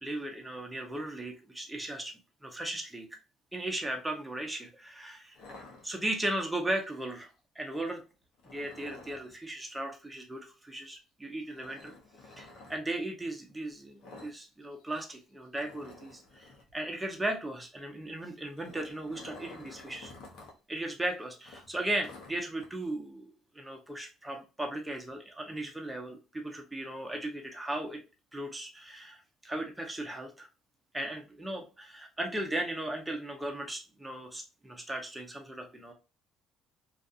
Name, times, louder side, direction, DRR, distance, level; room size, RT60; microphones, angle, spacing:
voice 1, 0.0-3.1 3.5-5.4 5.8-7.3 7.6-8.0 8.4-11.9 12.4-20.1 20.7-28.0 28.3-30.5 30.9-35.9, right 1 dB, 10° right, 3 dB, 0.7 m, -37 dB
sound 1, 5.3-6.4 8.4-9.3 11.5-12.8 14.0-14.4 14.6-14.8 15.1-15.2 15.6-16.7 18.3-20.5 20.9-21.0 21.4-22.7, left 3 dB, 70° left, 0.8 m, -50 dB
2.4 x 2.4 x 2.5 m, 0.31 s
supercardioid pair, 75°, 0 cm